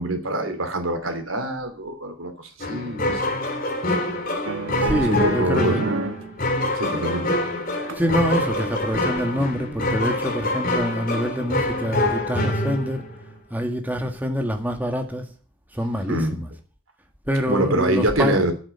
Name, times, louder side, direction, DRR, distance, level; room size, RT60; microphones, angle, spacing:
voice 1, 0.0-3.3 4.8-5.8 6.7-7.4 16.1-16.4 17.5-18.5, right 1 dB, 85° right, 3.1 m, -25 dB
sound 1, 2.6-13.2, left 1 dB, 45° left, 3.2 m, -26 dB
sound 2, 4.4-6.3 6.6-8.2 8.7-8.9, right 2 dB, 70° right, 1.2 m, -30 dB
voice 2, 4.8-5.8 7.9-13.0 13.5-15.2 15.7-16.5 17.3-18.4, equal, 10° right, 1.6 m, -25 dB
10.5 x 8.7 x 8.7 m
head